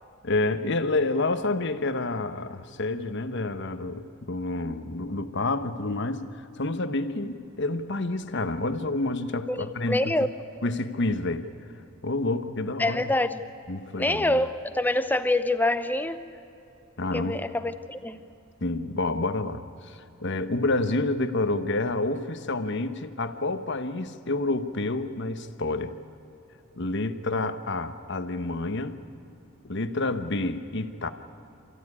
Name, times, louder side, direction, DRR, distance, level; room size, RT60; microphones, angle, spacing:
voice 1, 0.2-10.1 10.6-11.5 12.0-13.0 13.7-14.4 17.0-17.4 18.6-26.0 26.8-29.0 29.6-31.1, left 2 dB, 55° left, 10 dB, 1.1 m, -29 dB
voice 2, 9.5-10.3 12.8-13.4 14.0-16.2 17.1-18.2, left 1 dB, 10° left, 10 dB, 0.8 m, -26 dB
27.5 x 15.0 x 9.7 m, 2.9 s
head